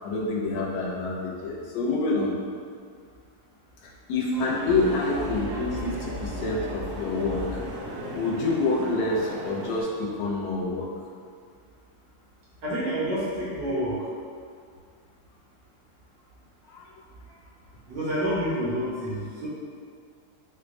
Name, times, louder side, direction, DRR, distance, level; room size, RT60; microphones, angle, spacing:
voice 1, 0.0-2.4 4.1-7.6 8.1-10.9 16.7-16.8, left 3 dB, 80° left, -3 dB, 1.4 m, -27 dB
sound 1, 4.3-9.8, right 2 dB, 85° right, 0.8 m, -37 dB
sound 2, 4.7-10.3, left 1 dB, 50° left, 1.4 m, -39 dB
voice 2, 12.6-14.1 17.9-19.5, equal, 70° right, -8 dB, 1.1 m, -28 dB
4.5 x 2.1 x 2.5 m, 2.2 s
omnidirectional pair, 2.3 m